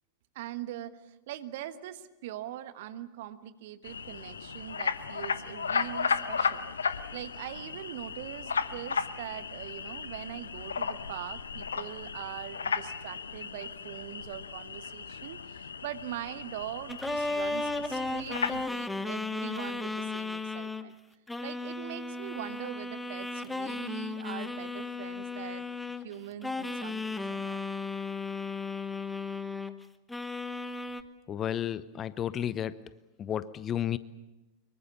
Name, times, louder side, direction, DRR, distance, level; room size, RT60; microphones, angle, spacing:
voice 1, 0.3-21.0 21.4-25.7 26.0-27.6, right 12 dB, 55° right, 12 dB, 1.3 m, -42 dB
sound 1, 3.8-18.7, left 6 dB, 70° left, 1.0 m, -35 dB
sound 2, 16.9-20.9 21.3-26.1 26.4-29.8 30.1-31.0, left 3 dB, 5° left, 1.1 m, -35 dB
voice 2, 31.3-32.8 33.2-34.0, left 10 dB, 25° left, 17 dB, 0.8 m, -32 dB
24.5 x 22.5 x 7.0 m, 1.0 s
figure-of-eight pair, 90°, 0 cm